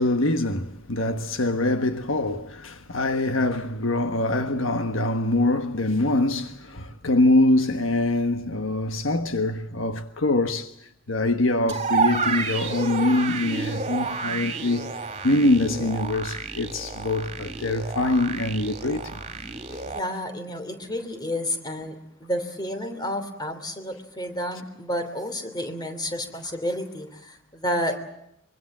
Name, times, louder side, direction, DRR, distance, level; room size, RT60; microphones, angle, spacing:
voice 1, 0.0-10.7 11.1-14.9 15.2-19.2 19.7-19.8, left 2 dB, 65° left, 1.4 m, -24 dB
sound 1, 11.7-20.0, right 4 dB, 30° right, 3.3 m, -30 dB
voice 2, 19.8-28.0, left 1 dB, 20° left, 3.1 m, -30 dB
24.5 x 24.0 x 7.4 m
head